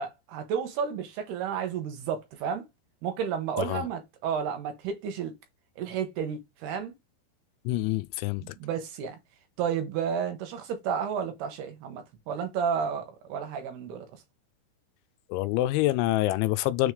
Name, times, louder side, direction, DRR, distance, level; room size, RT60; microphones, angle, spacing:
voice 1, 0.0-2.6 3.0-5.3 5.8-6.9 8.4-9.2 9.6-14.1, right 7 dB, 75° right, 2.7 m, -32 dB
voice 2, 7.7-8.6 15.3-16.9, left 16 dB, 90° left, 3.0 m, -26 dB
6.6 x 3.5 x 4.9 m
omnidirectional pair, 5.3 m